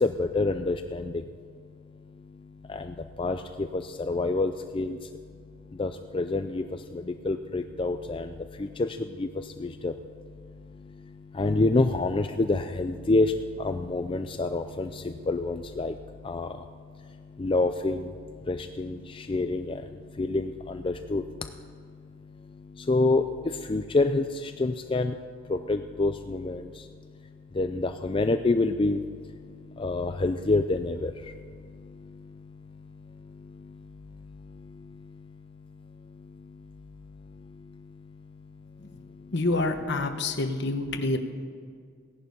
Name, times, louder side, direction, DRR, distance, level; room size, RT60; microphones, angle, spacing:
voice 1, 0.0-1.0 2.7-2.8 3.2-3.4 3.7-4.9 5.8-6.6 7.2-8.3 8.8-8.9 9.2-9.3 9.6-9.9 11.4-13.3 13.6-14.9 15.3-15.9 16.3-16.5 17.4-18.0 18.5-18.9 19.3-19.7 20.2-20.5 20.8-21.2 22.9-23.2 23.7-24.2 24.6-25.1 25.5-26.6 27.6-29.0 29.8-31.1, left 2 dB, 25° left, 8 dB, 0.4 m, -26 dB
voice 2, 39.3-41.2, left 2 dB, 55° left, 7 dB, 1.1 m, -27 dB
16.5 x 11.0 x 5.4 m, 2.1 s
head